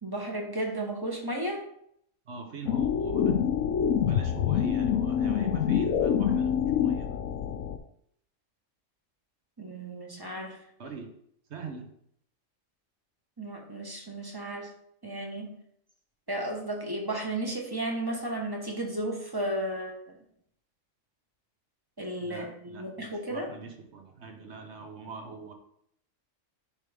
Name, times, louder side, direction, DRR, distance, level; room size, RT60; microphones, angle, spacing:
voice 1, 0.0-1.6 9.6-10.6 13.4-14.7 15.0-15.6 16.3-19.9 22.0-23.5, right 1 dB, 20° right, 1 dB, 1.0 m, -34 dB
voice 2, 2.3-3.4 4.0-7.2 10.8-11.1 11.5-11.9 22.2-25.5, right 4 dB, 60° right, 3 dB, 1.3 m, -43 dB
sound 1, 2.7-7.8, left 8 dB, 85° left, 1.0 m, -26 dB
10.0 x 3.5 x 3.4 m, 0.70 s
omnidirectional pair, 1.3 m